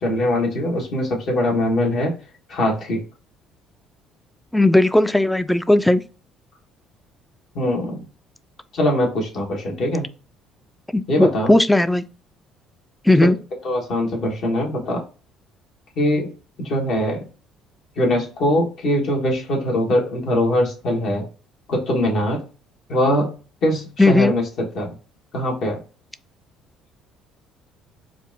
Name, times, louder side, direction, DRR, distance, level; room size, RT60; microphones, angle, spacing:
voice 1, 0.0-2.1 2.5-3.0 7.5-8.1 8.7-10.1 11.1-11.5 13.2-13.3 13.6-15.0 16.0-16.3 16.6-17.3 18.0-21.3 21.7-22.4 22.9-23.3 23.6-24.9 25.3-25.8, left 1 dB, 60° left, 1.3 m, -22 dB
voice 2, 4.5-6.0 10.9-12.0 13.0-13.4 24.0-24.3, left 1 dB, 5° left, 0.3 m, -16 dB
4.4 x 2.5 x 2.6 m
hypercardioid pair, 55°, 0 cm